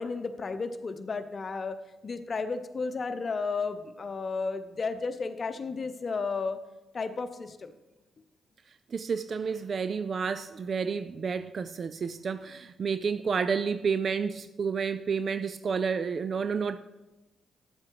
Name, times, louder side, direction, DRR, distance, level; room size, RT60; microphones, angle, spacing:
voice 1, 0.0-1.8 2.0-6.6 6.9-7.7, left 4 dB, 45° left, 0.8 m, -33 dB
voice 2, 8.9-16.8, right 5 dB, 50° right, 0.4 m, -30 dB
11.0 x 7.5 x 4.8 m
hypercardioid pair, 40°, 0 cm